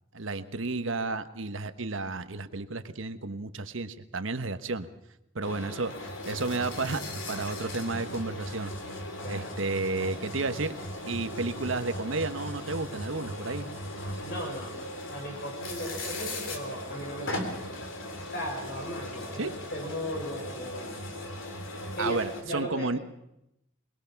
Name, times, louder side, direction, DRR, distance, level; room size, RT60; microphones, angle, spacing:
voice 1, 0.1-4.9 5.3-5.9 6.3-7.0 7.3-8.7 9.3-10.8 11.1-13.7 19.4-19.5 22.0-23.0, right 3 dB, 80° right, 11 dB, 1.2 m, -32 dB
sound 1, 5.4-22.4, left 1 dB, 80° left, 3.1 m, -38 dB
voice 2, 14.2-14.7 15.1-17.6 18.3-20.9 22.0-22.9, equal, 55° left, 1 dB, 6.1 m, -37 dB
22.0 x 21.5 x 5.9 m, 0.85 s
head